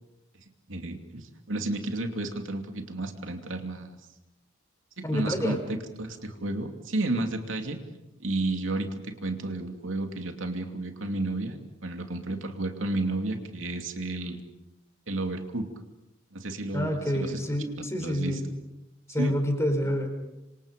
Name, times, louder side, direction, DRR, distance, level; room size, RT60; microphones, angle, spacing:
voice 1, 0.7-4.0 5.0-5.6 6.0-7.8 8.2-14.4 15.1-15.7 16.3-17.4 18.0-18.4 19.2-19.3 19.8-19.9, right 2 dB, 80° right, 4 dB, 2.7 m, -32 dB
voice 2, 5.0-5.6 16.7-18.5 19.1-20.1, equal, 15° left, 5 dB, 4.6 m, -28 dB
27.0 x 26.0 x 5.3 m, 0.95 s
head